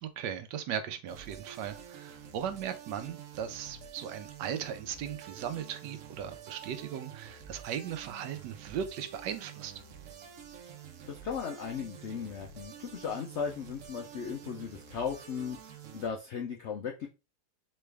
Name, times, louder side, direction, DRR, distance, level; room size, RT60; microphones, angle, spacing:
voice 1, 0.0-9.7, right 9 dB, 80° right, 1.2 m, -38 dB
sound 1, 1.1-16.1, right 8 dB, 60° right, 0.9 m, -49 dB
voice 2, 11.1-17.1, left 6 dB, 85° left, 0.6 m, -37 dB
4.1 x 3.3 x 3.3 m
omnidirectional pair, 1.9 m